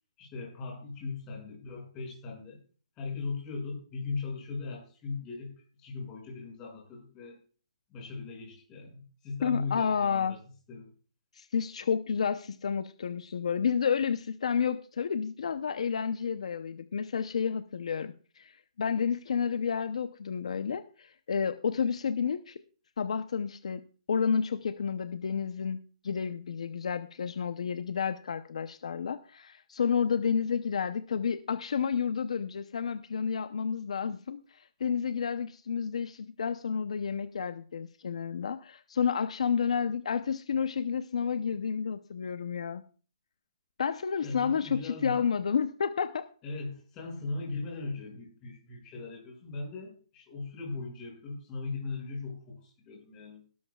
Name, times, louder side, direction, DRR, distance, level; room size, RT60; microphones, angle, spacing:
voice 1, 0.2-2.6 3.0-7.4 7.9-10.4 10.7-10.9 44.2-45.3 46.4-53.4, left 3 dB, 15° left, -1 dB, 6.1 m, -38 dB
voice 2, 9.4-10.3 11.3-22.6 23.0-23.8 24.1-42.8 43.8-46.3, left 6 dB, 65° left, 11 dB, 0.7 m, -30 dB
17.5 x 12.5 x 2.4 m, 0.39 s
hypercardioid pair, 170°, 4 cm